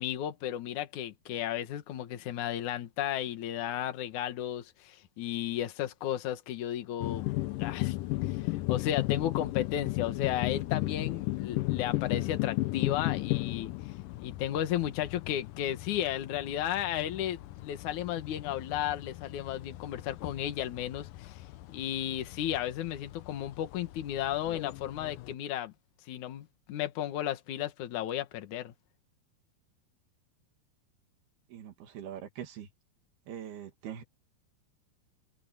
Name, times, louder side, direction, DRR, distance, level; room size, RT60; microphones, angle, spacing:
voice 1, 0.0-7.3 7.6-8.0 8.2-13.7 14.2-21.4 21.7-25.7 26.1-28.7, left 11 dB, 60° left, 2.7 m, -34 dB
sound 1, 7.0-25.3, left 19 dB, 80° left, 2.0 m, -35 dB
voice 2, 31.5-32.7 33.3-34.0, right 9 dB, 90° right, 4.3 m, -42 dB
omnidirectional pair, 4.3 m